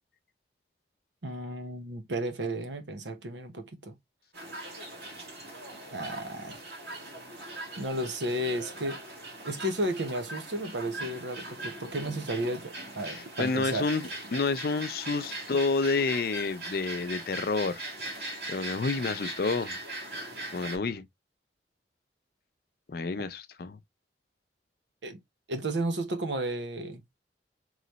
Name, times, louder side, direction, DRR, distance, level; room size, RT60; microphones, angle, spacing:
voice 1, 1.2-3.9 5.9-6.6 7.8-9.0 9.4-13.9 25.0-25.2 25.5-27.0, right 1 dB, 90° right, 1.0 m, -33 dB
sound 1, 4.3-20.8, right 2 dB, 60° right, 2.4 m, -40 dB
voice 2, 13.1-17.8 18.5-19.8 20.5-21.1 22.9-23.8, left 4 dB, 55° left, 0.5 m, -29 dB
3.9 x 3.1 x 3.0 m
head